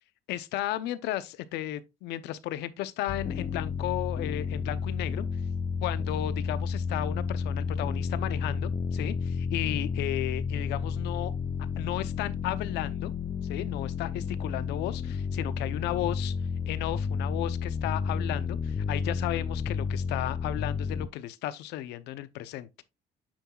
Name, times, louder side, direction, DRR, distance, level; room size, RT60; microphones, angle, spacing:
voice 1, 0.3-5.3 5.8-11.3 11.8-13.1 13.5-16.3 16.7-22.8, left 13 dB, 90° left, 0.7 m, -34 dB
sound 1, 3.1-21.1, left 6 dB, 30° left, 0.6 m, -31 dB
8.8 x 5.6 x 2.3 m
cardioid pair, 110°, 17 cm